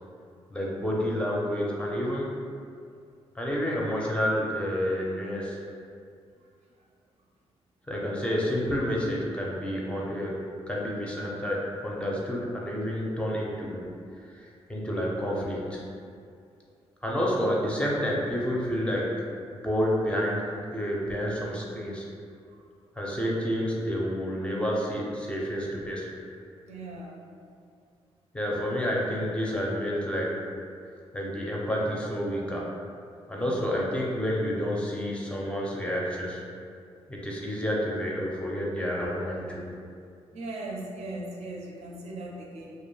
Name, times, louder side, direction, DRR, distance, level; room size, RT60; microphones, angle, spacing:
voice 1, 0.5-2.3 3.4-5.6 7.9-13.9 14.4-15.8 17.0-19.2 19.5-22.1 23.0-26.1 28.3-30.4 31.1-32.7 33.3-36.4 37.1-39.6, equal, 10° left, -4 dB, 0.4 m, -29 dB
voice 2, 26.7-27.2 33.3-33.9 40.3-42.7, right 2 dB, 80° right, -2 dB, 0.5 m, -39 dB
2.5 x 2.1 x 3.0 m, 2.3 s
cardioid pair, 115°, 11 cm